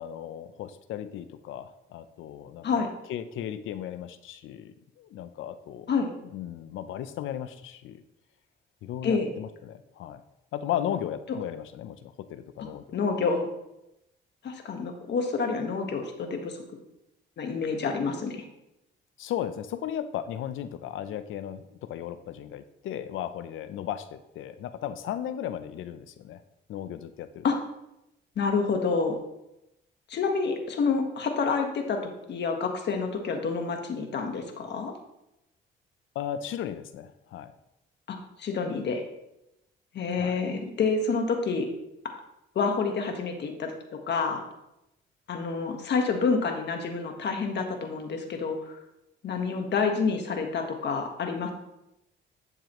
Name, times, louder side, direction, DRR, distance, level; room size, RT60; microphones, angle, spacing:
voice 1, 0.0-5.9 6.3-8.0 8.8-10.2 10.5-13.0 19.2-26.4 26.7-27.4 36.1-37.5 40.2-40.4, left 10 dB, 80° left, 12 dB, 0.6 m, -36 dB
voice 2, 12.9-13.5 14.4-16.6 17.4-18.4 27.4-27.6 28.4-29.2 30.1-32.0 32.3-34.9 38.1-39.0 39.9-41.7 42.5-43.7 44.1-44.4 45.3-48.7 49.2-51.5, left 4 dB, 60° left, 4 dB, 1.5 m, -28 dB
11.0 x 6.8 x 3.1 m, 0.88 s
cardioid pair, 90°, 20 cm